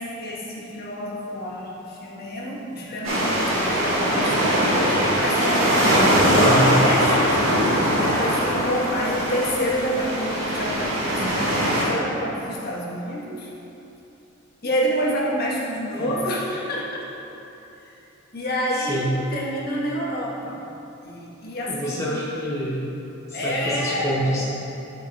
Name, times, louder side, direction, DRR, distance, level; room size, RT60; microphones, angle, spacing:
voice 1, 0.0-3.4 3.7-13.5 14.6-17.2 17.8-17.9 18.3-20.6 21.0-22.2 23.3-24.4, equal, 50° left, -4 dB, 1.3 m, -28 dB
sound 1, 3.0-11.8, equal, 85° right, 1.7 m, -21 dB
voice 2, 6.3-6.8 16.0-16.1 18.9-19.1 21.7-22.8 23.3-24.4, equal, 15° left, -7 dB, 0.8 m, -26 dB
11.0 x 4.8 x 3.4 m, 3.0 s
head